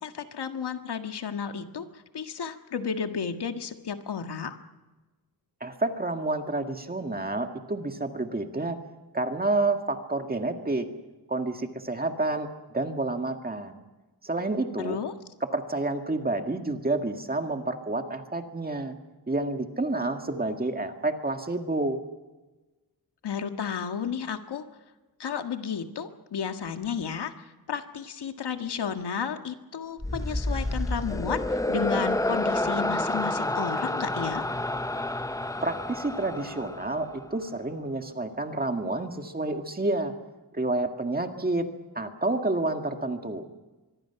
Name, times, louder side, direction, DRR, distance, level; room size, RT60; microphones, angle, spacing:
voice 1, 0.0-4.6 14.8-15.2 23.2-24.6 25.2-34.5, left 6 dB, 85° left, 6 dB, 1.8 m, -33 dB
voice 2, 5.6-8.8 9.1-10.9 11.3-12.5 12.7-13.8 14.2-15.0 15.5-18.9 19.3-22.0 35.6-40.1 40.5-41.7 42.0-43.5, right 2 dB, 25° right, 5 dB, 1.9 m, -29 dB
sound 1, 30.0-37.4, left 1 dB, 10° left, 0.6 m, -29 dB
25.0 x 22.5 x 5.9 m, 1.2 s
wide cardioid pair, 170°, 39 cm